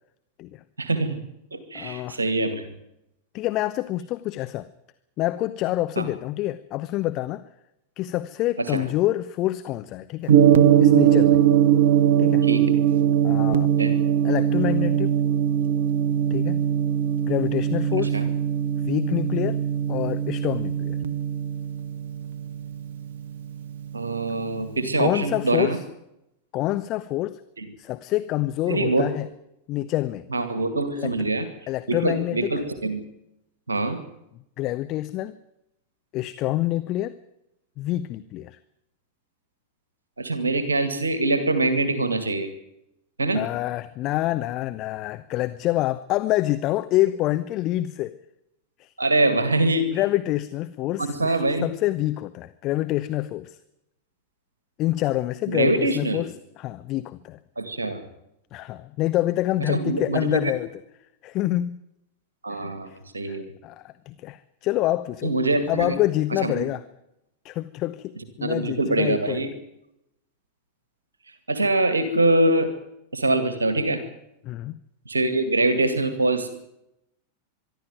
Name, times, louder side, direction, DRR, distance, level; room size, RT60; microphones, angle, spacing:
voice 1, 0.8-1.2 1.5-2.6 6.0-6.1 8.7-8.8 12.4-12.7 13.8-14.0 18.0-18.3 23.9-25.8 27.6-27.7 28.7-29.1 30.3-31.5 31.9-33.0 33.7-34.0 40.2-42.5 43.2-43.5 49.0-49.9 51.0-51.7 55.5-56.2 57.6-58.0 59.7-60.5 62.4-63.5 65.2-66.0 66.4-66.6 68.4-69.5 71.5-72.7 73.1-74.0 75.1-76.5, right 2 dB, 75° right, 10 dB, 2.2 m, -24 dB
voice 2, 1.7-2.2 3.3-4.7 5.2-7.5 8.0-10.3 10.8-11.4 12.2-12.4 13.2-13.7 14.2-15.2 16.3-16.6 17.2-18.2 18.8-19.6 19.9-21.0 25.0-25.8 26.5-27.4 27.8-29.3 29.7-30.2 31.0-31.1 31.7-32.5 34.6-35.4 36.1-37.2 37.8-38.6 43.3-48.2 48.8-48.9 49.9-53.6 54.8-57.4 58.5-60.7 61.2-61.8 62.5-63.0 63.3-65.3 65.7-66.8 67.4-69.5 74.4-74.8, left 16 dB, 40° left, 12 dB, 0.8 m, -27 dB
Gong, 10.3-24.5, right 9 dB, 60° right, 1.0 m, -21 dB
23.5 x 12.5 x 9.3 m, 0.86 s
figure-of-eight pair, 90°, 0 cm